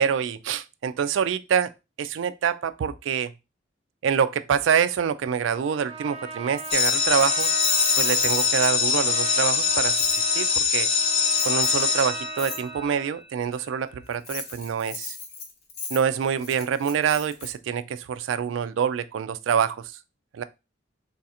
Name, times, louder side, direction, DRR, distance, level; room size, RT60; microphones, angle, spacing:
voice 1, 0.0-1.7 2.0-3.3 4.0-7.5 8.0-10.9 11.4-15.2 15.9-19.9 20.3-20.4, right 7 dB, 85° right, 0.3 m, -26 dB
Trumpet, 5.5-13.2, right 5 dB, 35° right, 0.6 m, -39 dB
Keys jangling, 6.6-8.9 10.0-10.2 11.3-11.8 12.4-12.6 14.1-17.5, left 5 dB, 55° left, 1.1 m, -34 dB
sound 1, 6.7-12.9, left 5 dB, 30° left, 0.5 m, -23 dB
3.2 x 2.5 x 4.1 m
head